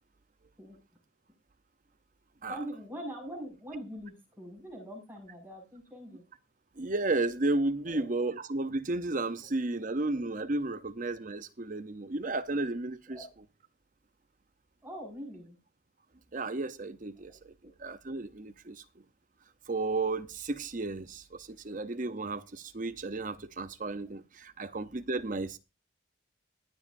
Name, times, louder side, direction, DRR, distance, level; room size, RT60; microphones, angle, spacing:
voice 1, 2.5-6.2 7.9-8.1 13.1-13.3 14.8-15.6 17.2-17.7 21.6-21.7 24.6-24.7, equal, 10° right, 5.7 m, -43 dB
voice 2, 6.8-13.2 16.3-17.5 17.8-18.8 19.7-25.6, right 2 dB, 40° right, 0.7 m, -33 dB
22.0 x 7.4 x 2.6 m
head